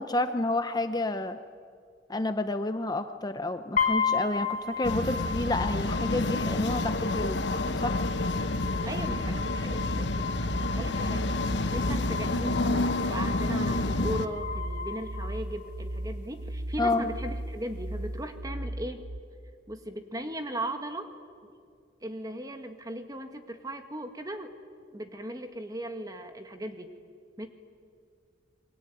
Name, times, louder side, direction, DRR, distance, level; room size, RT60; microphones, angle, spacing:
voice 1, 0.0-1.4 2.1-7.4 7.8-8.0 16.8-17.0, left 2 dB, 20° left, 9 dB, 0.8 m, -29 dB
sound 1, 3.8-15.8, left 5 dB, 50° left, 4.3 m, -34 dB
sound 2, 4.8-14.3, left 2 dB, 70° left, 1.1 m, -29 dB
sound 3, 7.0-19.2, right 1 dB, 55° right, 0.9 m, -38 dB
voice 2, 8.9-10.3 10.7-11.2 11.6-19.1 19.7-21.1 21.4-21.5 22.0-24.5 24.9-26.9 27.4-27.5, right 1 dB, 20° right, 7 dB, 1.9 m, -37 dB
28.5 x 22.5 x 9.3 m, 2.2 s
head